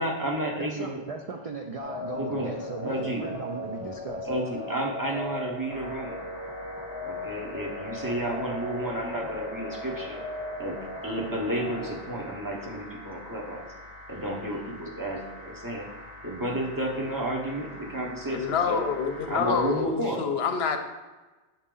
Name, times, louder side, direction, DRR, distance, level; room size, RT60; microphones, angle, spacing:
voice 1, 0.0-1.0 2.1-2.5 2.8-3.3 4.2-6.2 7.0-10.2 10.6-10.7 11.0-13.6 14.1-15.9 16.2-18.8 19.3-20.2, right 1 dB, 20° right, -1 dB, 0.9 m, -31 dB
voice 2, 0.6-4.3, right 4 dB, 55° right, 3 dB, 0.4 m, -37 dB
sound 1, 1.8-11.9, left 2 dB, 30° left, 1.0 m, -37 dB
sound 2, 5.7-19.7, left 1 dB, 85° right, 2.7 m, -45 dB
voice 3, 18.3-20.8, left 6 dB, 70° left, 6 dB, 0.9 m, -27 dB
7.4 x 4.1 x 3.8 m, 1.2 s
omnidirectional pair, 1.1 m